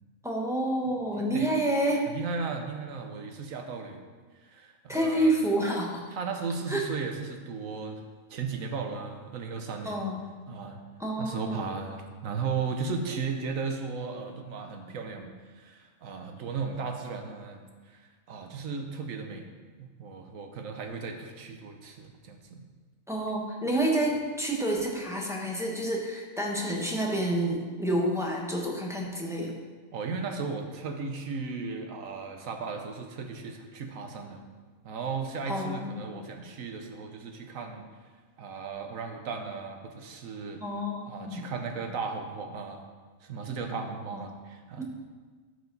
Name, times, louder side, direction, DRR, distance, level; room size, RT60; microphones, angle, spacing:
voice 1, 0.2-2.0 4.9-6.0 6.7-6.8 9.8-10.2 11.0-11.7 23.1-29.5 35.5-36.0 40.6-41.5 44.1-44.2 44.8-44.9, right 1 dB, ahead, -3 dB, 1.1 m, -29 dB
voice 2, 0.9-1.5 2.1-4.0 4.4-5.4 6.1-8.0 8.3-10.1 10.5-10.8 11.2-18.0 18.3-19.5 19.8-22.6 29.9-34.4 34.8-37.8 38.4-40.6 41.1-42.8 43.2-44.8, right 5 dB, 75° right, 4 dB, 1.2 m, -36 dB
12.5 x 4.9 x 4.0 m, 1.4 s
omnidirectional pair, 1.4 m